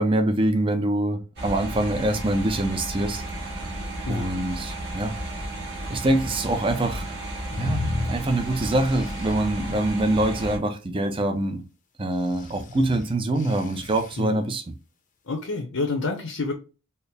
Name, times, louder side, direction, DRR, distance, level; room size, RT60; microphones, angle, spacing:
voice 1, 0.0-3.2 4.1-5.1 5.9-7.1 7.6-7.8 8.1-11.6 12.0-14.6, right 1 dB, 25° right, 0.5 m, -24 dB
sound 1, 1.4-10.6, right 1 dB, 50° right, 2.2 m, -33 dB
sound 2, 7.5-9.4 12.2-14.2, left 2 dB, 35° left, 0.6 m, -33 dB
voice 2, 15.3-16.5, left 3 dB, 75° left, 0.8 m, -28 dB
4.4 x 2.1 x 3.3 m
head